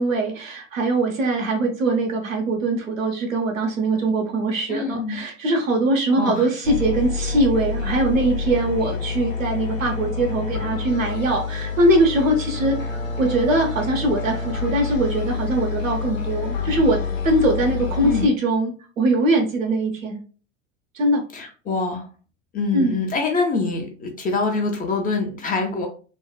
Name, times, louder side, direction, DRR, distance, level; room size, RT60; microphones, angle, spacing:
voice 1, 0.0-17.0 17.2-20.2 20.9-21.2 22.7-23.0, right 2 dB, 80° right, 1 dB, 1.0 m, -22 dB
voice 2, 4.7-5.2 6.2-6.5 18.0-18.3 21.3-22.0 22.5-25.9, left 3 dB, 20° left, 3 dB, 0.7 m, -25 dB
sound 1, 6.6-18.3, left 5 dB, 80° left, 0.8 m, -28 dB
3.4 x 2.3 x 2.3 m, 0.38 s
figure-of-eight pair, 85°, 39 cm